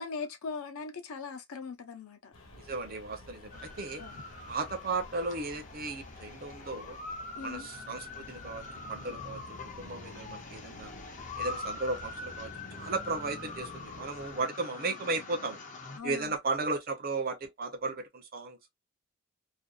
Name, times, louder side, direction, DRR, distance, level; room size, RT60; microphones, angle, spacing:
voice 1, 0.0-2.3 4.0-4.2 7.4-7.7 16.0-16.4, left 4 dB, 75° left, 0.6 m, -40 dB
sound 1, 2.3-14.4, left 1 dB, 60° left, 1.0 m, -50 dB
voice 2, 2.5-4.0 4.5-7.0 7.4-10.9 11.4-15.6 16.0-18.7, right 3 dB, 40° right, 0.5 m, -35 dB
sound 2, 3.5-16.0, left 3 dB, 35° left, 0.4 m, -44 dB
2.5 x 2.2 x 2.2 m
head